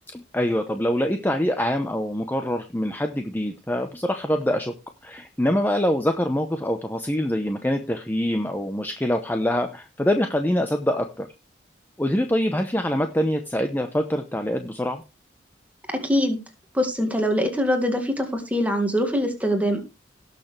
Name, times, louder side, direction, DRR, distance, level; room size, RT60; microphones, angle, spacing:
voice 1, 0.1-4.7 5.0-11.3 12.0-15.0, equal, 10° left, 6 dB, 0.8 m, -24 dB
voice 2, 15.9-16.4 16.7-19.8, equal, 10° right, 5 dB, 2.0 m, -23 dB
18.0 x 6.7 x 3.2 m, 0.28 s
head